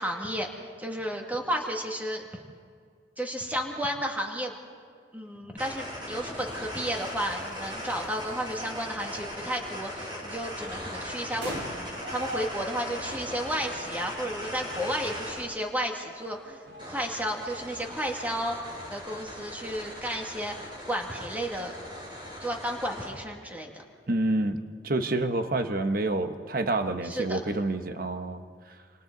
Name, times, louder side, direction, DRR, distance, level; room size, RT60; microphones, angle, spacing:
voice 1, 0.0-2.2 3.2-4.5 5.1-11.5 12.1-18.6 18.9-20.5 20.9-21.7 22.4-23.8 27.0-27.4, equal, 10° right, 1 dB, 2.2 m, -32 dB
sound 1, 5.6-15.4 16.8-23.1, equal, 25° right, 7.4 m, -39 dB
sound 2, 6.4-19.8, right 1 dB, 75° right, 4.6 m, -46 dB
voice 2, 24.1-28.4, right 2 dB, 50° right, 7 dB, 1.1 m, -28 dB
27.5 x 27.5 x 4.0 m, 2.1 s
head